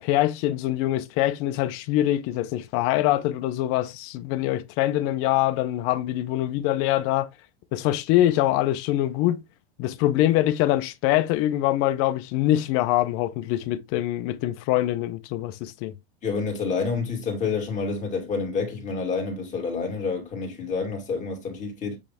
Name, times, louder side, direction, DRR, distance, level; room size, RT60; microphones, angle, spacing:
voice 1, 0.0-7.3 7.7-9.4 9.8-15.9, left 14 dB, 45° left, 0.6 m, -24 dB
voice 2, 16.2-22.0, left 4 dB, 25° left, 2.6 m, -28 dB
8.4 x 3.2 x 3.5 m
supercardioid pair, 145°, 32 cm